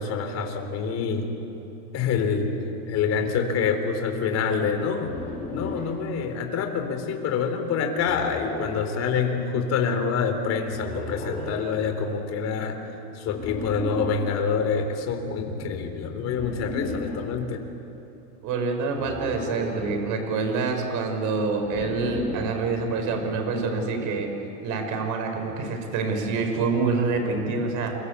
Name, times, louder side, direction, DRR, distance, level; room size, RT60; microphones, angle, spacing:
voice 1, 0.0-1.3 1.9-2.5 2.9-5.1 5.5-12.8 13.1-17.6, left 5 dB, 35° left, 5 dB, 3.8 m, -26 dB
sound 1, 5.0-6.0 7.9-8.9 10.7-11.7 13.3-14.3 16.3-17.3 18.9-20.0 21.6-22.6, left 3 dB, 20° left, 4.5 m, -34 dB
voice 2, 18.4-24.3 24.6-28.0, right 4 dB, 45° right, 5 dB, 5.5 m, -26 dB
29.0 x 24.0 x 8.3 m, 2.9 s
supercardioid pair, 140°, 43 cm